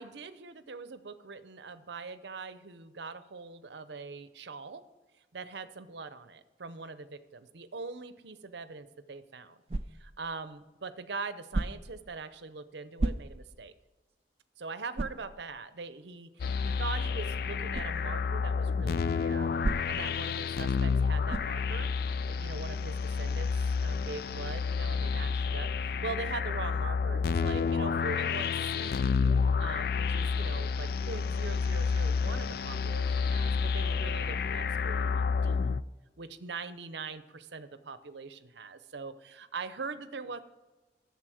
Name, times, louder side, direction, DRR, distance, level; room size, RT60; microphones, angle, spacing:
voice 1, 0.0-4.8 5.3-9.6 9.9-13.7 14.6-19.5 19.9-21.9 22.3-23.5 23.8-29.1 29.6-35.8 36.2-40.4, right 4 dB, 70° right, 13 dB, 0.7 m, -42 dB
sound 1, 9.7-10.2 11.5-12.0 13.0-13.6 14.1-14.2 14.9-15.3 17.7-18.0 19.6-20.1 21.3-21.6, right 2 dB, 35° right, 0.4 m, -33 dB
sound 2, 16.4-35.8, left 5 dB, 55° left, 0.3 m, -30 dB
11.0 x 7.1 x 6.3 m, 1.2 s
head